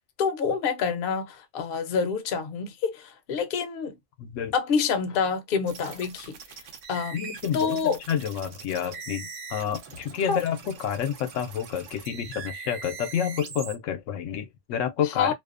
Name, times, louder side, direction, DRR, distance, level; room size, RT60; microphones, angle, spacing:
voice 1, 0.2-3.9 4.5-6.4 6.9-8.0 10.3-10.4 15.0-15.3, left 6 dB, 60° left, 0.7 m, -27 dB
voice 2, 4.2-4.5 7.1-15.3, left 8 dB, 85° left, 1.0 m, -29 dB
sound 1, 5.7-13.7, right 5 dB, 90° right, 1.0 m, -42 dB
2.6 x 2.1 x 2.4 m
omnidirectional pair, 1.2 m